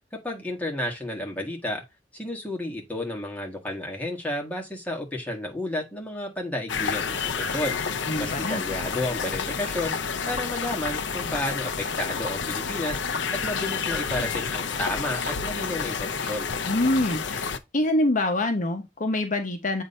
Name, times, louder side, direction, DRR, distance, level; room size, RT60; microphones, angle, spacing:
voice 1, 0.2-1.8 2.1-7.8 8.2-10.0 10.3-13.0 13.4-16.5, left 1 dB, 10° left, 1.6 m, -32 dB
sound 1, 6.7-17.6, left 5 dB, 80° left, 0.6 m, -29 dB
voice 2, 8.1-8.6 16.6-17.4 17.7-19.8, left 1 dB, 45° left, 0.9 m, -25 dB
7.7 x 2.7 x 5.4 m
head